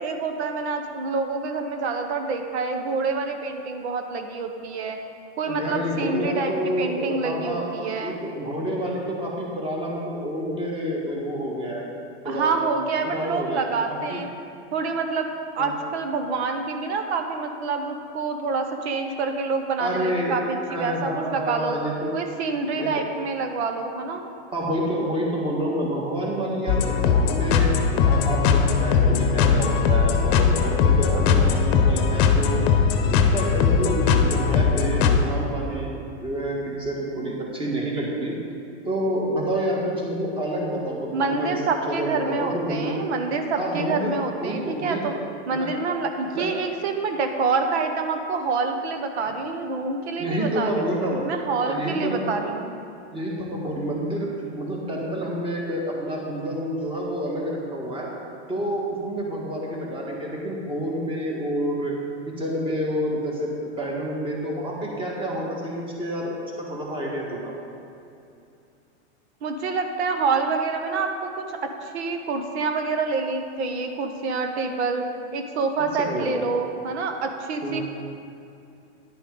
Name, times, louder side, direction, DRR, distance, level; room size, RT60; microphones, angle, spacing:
voice 1, 0.0-5.0 5.4-8.2 12.2-14.3 14.7-15.3 15.5-21.8 22.1-24.2 41.1-45.1 45.5-50.9 51.2-52.7 69.4-75.0 75.3-77.8, right 4 dB, 65° right, 5 dB, 1.0 m, -27 dB
voice 2, 5.4-7.7 8.0-11.9 12.2-12.6 13.0-14.2 15.6-15.7 19.8-20.4 20.7-22.2 22.8-23.0 24.5-27.7 28.0-32.7 33.1-35.9 36.2-38.3 38.8-41.6 41.9-43.0 43.6-44.1 44.4-45.2 45.5-45.7 46.3-46.5 50.2-51.2 51.6-52.3 53.1-54.3 54.6-58.1 58.5-61.9 62.3-67.5 76.0-76.5 77.6-77.8, equal, 15° right, -2 dB, 1.6 m, -28 dB
sound 1, 26.7-35.2, left 6 dB, 50° left, 0.8 m, -20 dB
10.5 x 8.7 x 3.9 m, 2.6 s
supercardioid pair, 145°, 35 cm